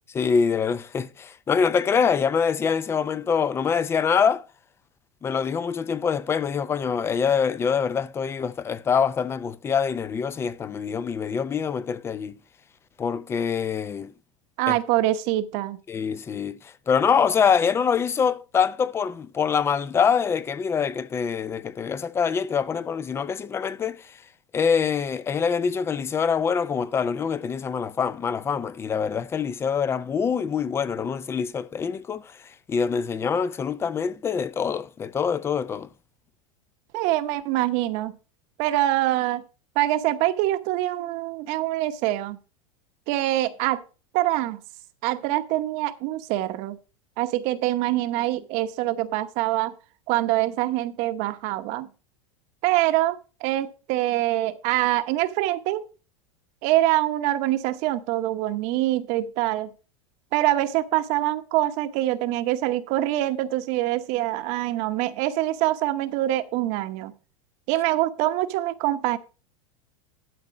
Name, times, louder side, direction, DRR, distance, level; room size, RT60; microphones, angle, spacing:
voice 1, 0.1-4.4 5.2-12.4 13.0-14.1 14.7-14.8 15.9-24.2 24.5-32.4 32.7-35.9, left 6 dB, 15° left, 0.5 m, -25 dB
voice 2, 14.6-15.8 36.9-38.2 38.6-39.4 39.7-42.4 43.1-43.8 44.1-44.6 45.0-46.8 47.2-49.7 50.1-51.9 52.6-55.8 56.6-59.7 60.3-67.1 67.7-69.2, right 15 dB, 45° right, 1.0 m, -24 dB
12.0 x 4.2 x 6.1 m
supercardioid pair, 145°, 17 cm